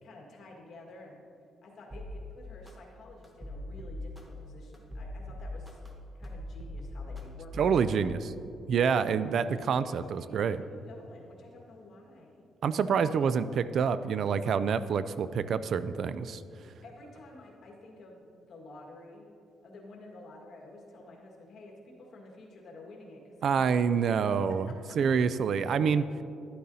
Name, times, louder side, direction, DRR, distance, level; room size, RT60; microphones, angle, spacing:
voice 1, 0.0-1.2 1.6-5.8 6.1-8.2 9.1-12.5 16.8-19.3 19.6-25.5, left 2 dB, 60° left, -1 dB, 1.7 m, -51 dB
sound 1, 1.9-2.1 2.7-2.8 3.2-4.2 4.7-5.9 6.2-7.2 7.5-7.8, left 1 dB, 15° right, 1.2 m, -41 dB
voice 2, 7.6-8.3 8.7-10.6 12.6-16.4 23.4-24.7 25.0-26.1, right 6 dB, 60° right, 14 dB, 0.3 m, -27 dB
12.0 x 8.5 x 2.7 m, 2.6 s
cardioid pair, 90°, 0 cm